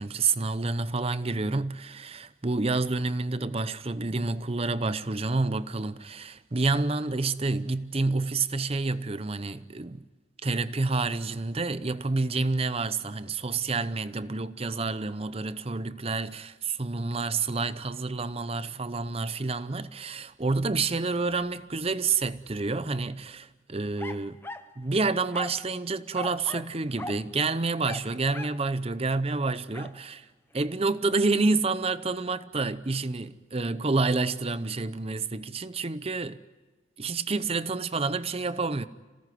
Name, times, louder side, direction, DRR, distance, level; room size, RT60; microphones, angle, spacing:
voice 1, 0.0-10.0 10.4-24.4 24.8-30.3 30.5-36.4 37.0-38.8, right 3 dB, 30° right, 0.7 m, -28 dB
sound 1, 24.0-24.7 25.3-25.7 26.1-26.7 27.0-27.2 27.8-28.6 29.7-30.0, left 2 dB, 10° left, 0.8 m, -39 dB
27.0 x 17.5 x 9.4 m
head